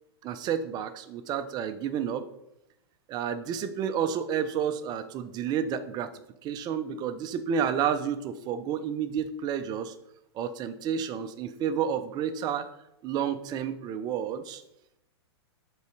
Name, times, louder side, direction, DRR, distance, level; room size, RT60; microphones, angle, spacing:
voice 1, 0.2-2.2 3.1-6.1 6.4-9.9 10.3-12.7 13.0-14.6, right 8 dB, 30° right, 10 dB, 0.5 m, -30 dB
5.4 x 3.9 x 4.6 m, 0.84 s
hypercardioid pair, 115°, 14 cm